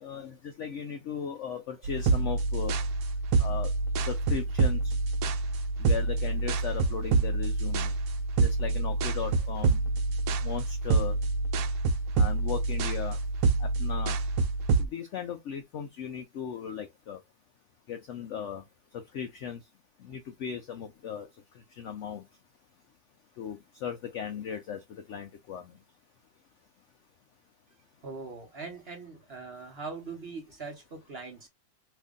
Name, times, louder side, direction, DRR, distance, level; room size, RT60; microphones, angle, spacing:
voice 1, 0.0-2.7 3.4-3.7 4.1-4.8 5.8-7.9 8.4-9.8 10.4-11.1 12.2-13.2 13.6-14.2 14.9-17.2 17.9-18.6 19.1-19.6 20.1-21.3 21.8-22.2 23.4-24.8 25.1-25.6, left 8 dB, 80° left, 0.6 m, -37 dB
sound 1, 1.8-14.9, right 3 dB, 70° right, 1.0 m, -27 dB
voice 2, 28.0-31.5, right 4 dB, 45° right, 0.9 m, -41 dB
2.8 x 2.6 x 3.6 m
omnidirectional pair, 1.8 m